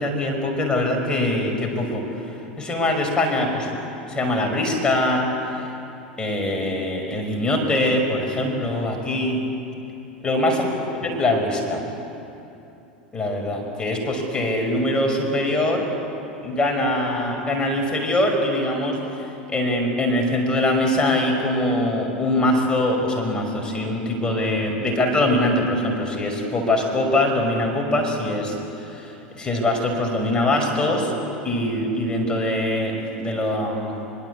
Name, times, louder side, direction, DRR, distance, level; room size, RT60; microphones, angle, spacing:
voice 1, 0.0-3.8 4.1-5.3 6.2-9.4 10.2-10.6 11.0-11.8 13.1-15.9 16.4-31.1 31.4-33.9, left 1 dB, 15° left, 1 dB, 5.6 m, -23 dB
24.0 x 23.5 x 8.5 m, 2.8 s
figure-of-eight pair, 80°, 5 cm